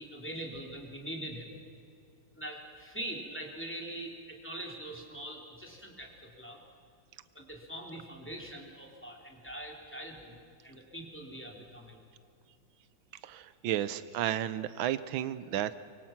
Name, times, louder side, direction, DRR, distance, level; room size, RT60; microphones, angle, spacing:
voice 1, 0.0-1.6 2.3-6.6 7.3-10.4 10.6-12.0, right 1 dB, 5° left, 0 dB, 3.3 m, -43 dB
voice 2, 13.2-15.7, right 11 dB, 85° right, 14 dB, 1.5 m, -32 dB
24.5 x 23.5 x 5.9 m, 2.5 s
omnidirectional pair, 2.2 m